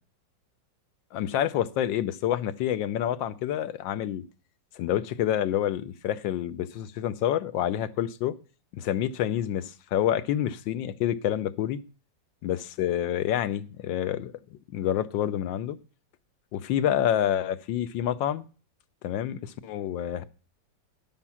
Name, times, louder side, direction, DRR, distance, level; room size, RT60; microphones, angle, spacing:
voice 1, 1.1-4.2 4.8-8.3 8.7-11.8 12.4-14.3 14.7-15.8 16.5-18.5 19.0-20.2, left 11 dB, 85° left, 1.4 m, -28 dB
11.0 x 7.4 x 5.6 m
omnidirectional pair, 2.0 m